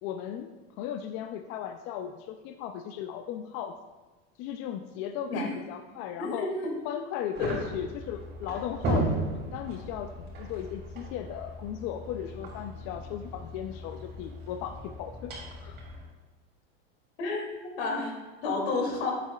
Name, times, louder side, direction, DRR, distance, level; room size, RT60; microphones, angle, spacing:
voice 1, 0.0-3.8 4.4-6.5 6.8-15.3 15.6-15.8, left 9 dB, 45° left, 7 dB, 0.4 m, -37 dB
voice 2, 6.2-6.7 7.4-7.6 17.2-19.1, left 3 dB, 75° left, 0 dB, 2.5 m, -31 dB
sound 1, 7.3-16.0, right 1 dB, 30° right, 2.5 m, -36 dB
10.5 x 7.4 x 2.3 m, 1.2 s
supercardioid pair, 140°, 31 cm